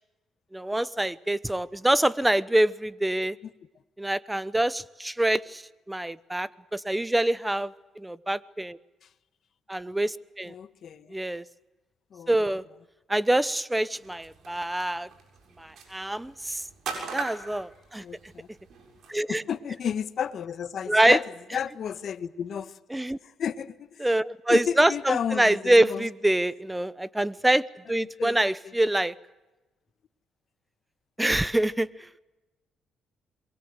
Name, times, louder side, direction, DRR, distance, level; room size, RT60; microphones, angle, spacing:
voice 1, 0.5-3.4 4.0-5.6 5.9-8.8 9.7-10.5 11.1-11.4 12.3-12.6 13.1-15.1 15.6-16.6 17.1-18.0 19.1-19.4 20.9-21.2 22.9-23.2 24.0-29.1 31.2-31.9, right 1 dB, 10° right, 0.9 m, -25 dB
voice 2, 10.4-11.2 12.1-12.5 18.0-18.5 19.3-21.2 21.5-22.8 23.2-24.1 24.5-26.1 27.9-28.4, left 8 dB, 60° left, 1.4 m, -32 dB
sound 1, 14.0-19.1, right 5 dB, 65° right, 7.0 m, -41 dB
26.5 x 23.0 x 8.0 m
cardioid pair, 90°, 0 cm